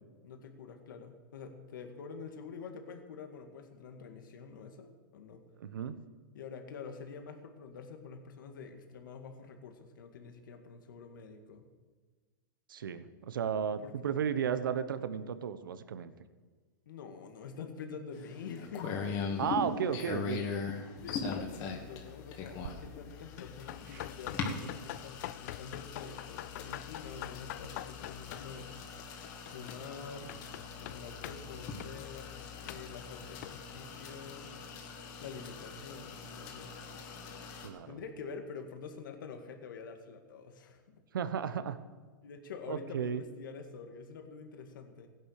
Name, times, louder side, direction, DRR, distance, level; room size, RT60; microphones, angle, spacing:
voice 1, 0.2-5.4 6.3-11.7 13.8-13.9 16.9-19.1 21.0-28.7 29.5-30.3 30.8-32.3 32.6-34.5 35.2-36.7 37.9-41.0 42.2-45.1, left 5 dB, 75° left, 6 dB, 2.0 m, -47 dB
voice 2, 5.6-5.9 12.7-16.1 19.4-20.4 37.6-38.0 41.1-41.8 42.7-43.2, right 8 dB, 90° right, 12 dB, 1.1 m, -34 dB
sound 1, 18.1-37.7, left 5 dB, 35° left, 2.5 m, -41 dB
sound 2, 21.0-34.3, left 16 dB, 55° left, 0.4 m, -47 dB
sound 3, 22.5-22.7 23.8-24.1 26.9-29.7, right 9 dB, 65° right, 1.1 m, -55 dB
16.5 x 10.5 x 6.6 m, 1.4 s
hypercardioid pair, 145°, 11 cm